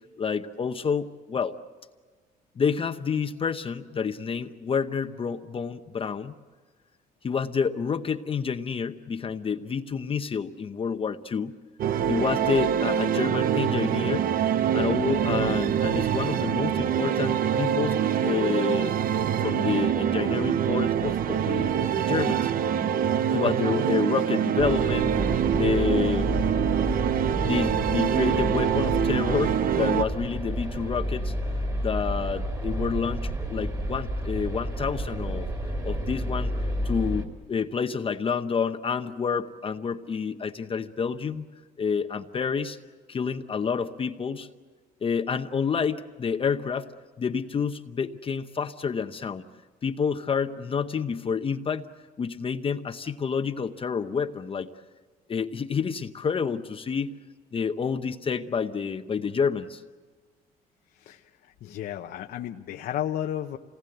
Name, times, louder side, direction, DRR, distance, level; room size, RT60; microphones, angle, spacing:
voice 1, 0.2-1.5 2.6-6.3 7.2-11.5 12.1-14.3 14.7-18.9 19.4-22.5 23.3-25.1 25.5-26.3 27.4-31.3 31.8-35.5 35.8-41.4 41.8-42.8 43.1-44.5 45.0-46.9 47.2-49.4 49.8-51.8 52.2-54.7 55.3-57.1 57.5-59.8, left 6 dB, 30° left, 7 dB, 0.9 m, -29 dB
sound 1, 11.8-30.0, right 9 dB, 60° right, 0.9 m, -25 dB
sound 2, 24.6-37.2, equal, 20° right, 3.3 m, -31 dB
voice 2, 60.9-63.6, left 11 dB, 65° left, 4 dB, 0.9 m, -33 dB
27.5 x 19.5 x 8.0 m, 1.4 s
cardioid pair, 110°, 17 cm